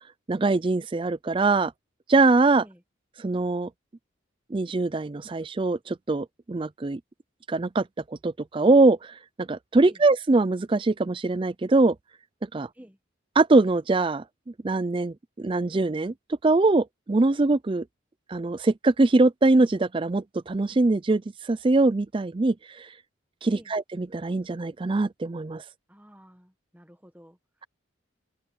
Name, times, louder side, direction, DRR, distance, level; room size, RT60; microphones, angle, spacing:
voice 1, 0.3-1.7 2.1-2.6 3.2-3.7 4.5-7.0 7.5-7.9 8.2-12.0 12.4-12.7 13.4-14.2 14.6-16.1 16.4-17.8 18.3-22.9 23.4-25.6, right 3 dB, 25° right, 0.4 m, -22 dB
voice 2, 25.9-27.7, equal, 10° right, 1.6 m, -51 dB
head